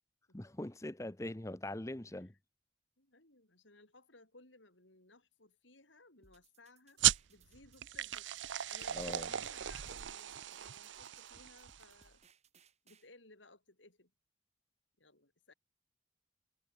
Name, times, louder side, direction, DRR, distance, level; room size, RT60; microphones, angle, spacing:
voice 1, 0.3-2.3 8.9-9.3, left 1 dB, 15° left, 0.8 m, -42 dB
voice 2, 3.0-7.0 7.3-8.3 8.7-12.2 12.8-14.1 15.0-15.5, left 2 dB, 85° left, 8.0 m, -61 dB
sound 1, 6.2-13.1, right 5 dB, 35° right, 7.6 m, -68 dB
sound 2, 7.0-12.1, right 12 dB, 85° right, 0.7 m, -36 dB
head